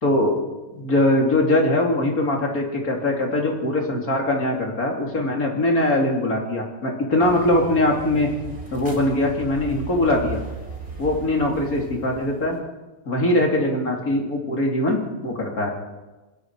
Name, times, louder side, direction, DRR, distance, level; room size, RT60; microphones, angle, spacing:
voice 1, 0.0-0.4 0.8-8.3 8.7-10.4 11.0-12.6 13.1-15.7, left 1 dB, 80° left, 0 dB, 3.6 m, -21 dB
sound 1, 7.2-12.6, right 2 dB, 40° right, 6.2 m, -37 dB
27.0 x 21.0 x 4.8 m, 1.2 s
omnidirectional pair, 1.5 m